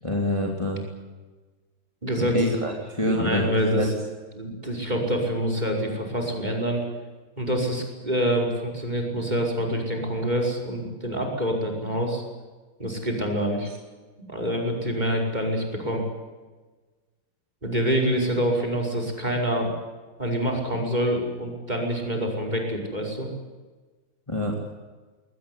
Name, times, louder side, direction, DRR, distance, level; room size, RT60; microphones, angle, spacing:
voice 1, 0.0-0.8 2.2-3.9 24.3-24.6, left 1 dB, 15° left, 0 dB, 3.3 m, -26 dB
voice 2, 2.0-2.4 3.1-3.9 4.3-6.8 7.4-12.2 12.8-13.7 14.3-16.0 17.6-19.7 20.2-23.3, equal, 20° right, 2 dB, 5.6 m, -26 dB
22.0 x 19.5 x 9.9 m, 1.3 s
omnidirectional pair, 2.1 m